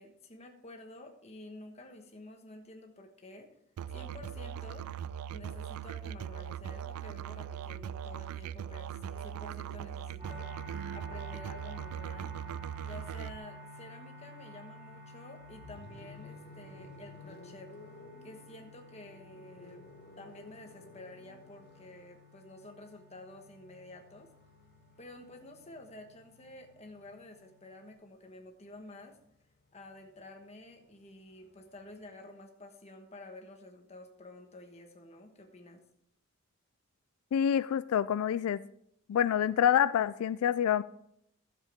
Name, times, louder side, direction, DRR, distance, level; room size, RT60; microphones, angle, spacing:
voice 1, 0.0-3.5 3.9-4.8 5.3-10.5 10.9-12.3 12.8-17.7 18.2-19.8 20.2-24.3 25.0-29.2 29.7-35.8, left 2 dB, 30° left, 3 dB, 1.3 m, -50 dB
Musical instrument, 3.8-13.4, right 9 dB, 90° right, 0.3 m, -40 dB
sound 1, 10.2-27.9, equal, 30° right, 3.6 m, -52 dB
sound 2, 15.4-27.3 28.6-32.2, left 3 dB, 50° left, 0.7 m, -56 dB
voice 2, 37.3-38.6 39.1-40.8, left 9 dB, 85° left, 15 dB, 0.3 m, -27 dB
13.5 x 7.4 x 3.6 m, 0.72 s
head